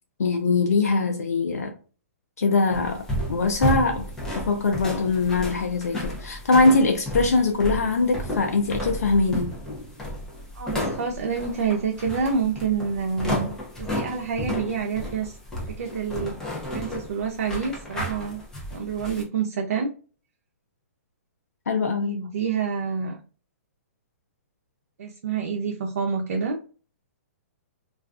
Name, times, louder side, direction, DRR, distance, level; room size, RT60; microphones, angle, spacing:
voice 1, 0.2-1.8 2.4-4.1 4.4-9.5 21.7-22.2, left 3 dB, 90° left, 0.4 m, -22 dB
sound 1, 2.7-19.2, equal, 5° left, 0.6 m, -32 dB
voice 2, 10.6-13.5 13.8-15.4 15.7-16.3 16.7-18.4 18.7-19.9 22.0-23.2 25.0-26.6, right 5 dB, 75° right, 0.5 m, -27 dB
2.3 x 2.3 x 2.4 m
hypercardioid pair, 140°, 8 cm